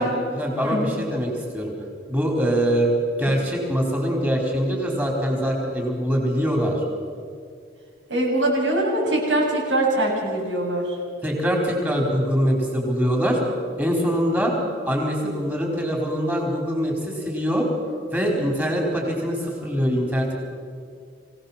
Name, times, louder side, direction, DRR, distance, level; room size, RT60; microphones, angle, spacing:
voice 1, 0.0-1.7 2.1-2.9 3.2-6.8 11.2-13.4 13.8-14.5 14.9-17.7 18.1-20.3, equal, 10° right, 0 dB, 4.4 m, -23 dB
voice 2, 8.1-10.9, right 1 dB, 85° right, -3 dB, 7.6 m, -22 dB
25.0 x 17.5 x 7.4 m, 2.2 s
head